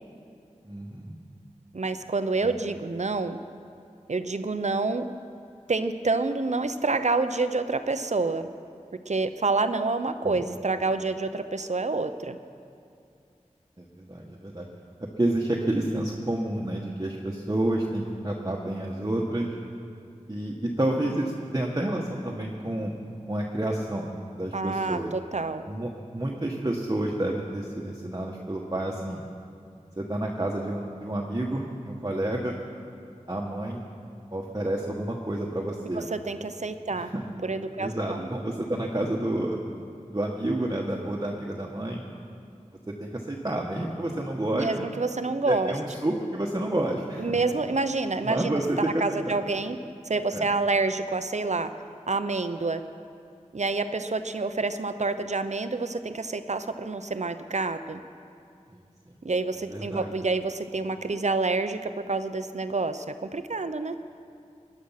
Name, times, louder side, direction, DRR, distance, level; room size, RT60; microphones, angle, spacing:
voice 1, 0.6-1.1 2.4-2.5 10.2-10.4 13.8-14.7 15.0-19.6 20.3-22.9 23.3-25.1 25.7-29.2 30.0-32.6 33.3-33.8 34.3-36.1 36.9-37.2 37.8-39.6 40.1-42.0 42.9-44.8 45.5-47.4 48.2-49.4 50.3-50.5 59.1-59.2 59.7-60.1, right 1 dB, 30° right, -1 dB, 1.3 m, -29 dB
voice 2, 1.7-3.4 4.1-5.1 5.7-8.5 9.1-12.4 24.5-25.6 35.9-37.1 37.4-38.3 44.5-45.7 47.2-49.8 50.1-51.7 52.1-52.8 53.5-58.0 59.2-64.0, right 3 dB, 65° right, 10 dB, 0.7 m, -28 dB
19.0 x 11.0 x 5.8 m, 2.4 s
wide cardioid pair, 40°, 13 cm